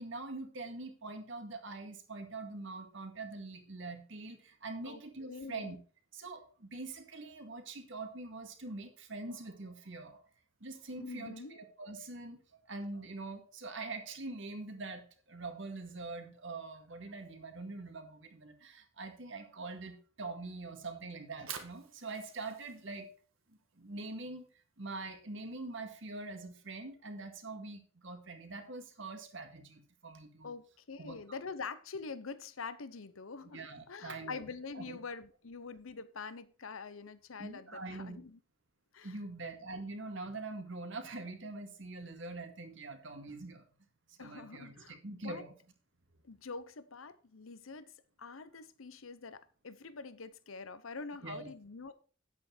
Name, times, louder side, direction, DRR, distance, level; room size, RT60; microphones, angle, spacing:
voice 1, 0.0-5.8 6.1-10.2 10.6-12.4 12.7-23.1 23.8-24.5 24.8-30.5 31.0-31.2 33.5-34.5 34.7-35.0 37.4-38.2 39.0-43.6 44.1-45.5 51.2-51.5, right 3 dB, 65° right, 1.9 m, -44 dB
voice 2, 5.3-5.8 11.0-11.6 30.4-38.4 38.9-39.2 44.2-45.0 45.2-45.4 46.2-47.9 48.2-51.9, left 4 dB, 80° left, 0.8 m, -45 dB
Fire, 21.2-27.4, right 8 dB, 85° right, 1.7 m, -52 dB
9.5 x 8.3 x 4.4 m
head